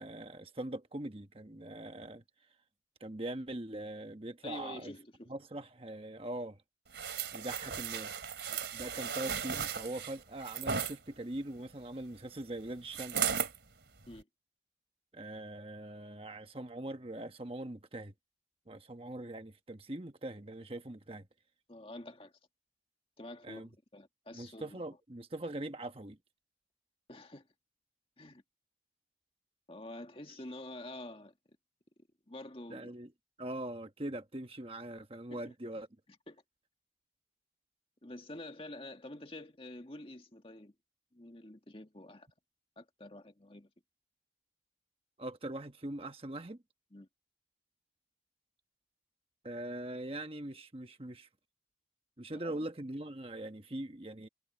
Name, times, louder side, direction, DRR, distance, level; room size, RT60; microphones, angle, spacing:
voice 1, 0.0-2.2 3.0-4.9 5.3-6.6 7.3-8.2 8.7-13.2 15.1-18.1 18.7-21.3 23.4-23.7 24.3-26.2 32.7-33.1 33.4-35.9 45.2-46.6 49.4-51.3 52.2-54.3, right 1 dB, 30° right, 1.3 m, -42 dB
voice 2, 4.4-5.3 8.5-8.6 14.1-14.3 21.7-22.3 23.2-24.8 27.1-27.5 28.2-28.4 29.7-31.3 32.3-32.9 35.0-35.1 35.3-35.5 36.3-36.4 38.0-40.7 41.1-42.3 42.8-43.7 46.9-47.1 52.3-52.5, left 1 dB, 30° left, 2.0 m, -48 dB
sound 1, 6.9-11.0 12.9-13.6 14.1-14.2, right 7 dB, 75° right, 2.9 m, -36 dB
head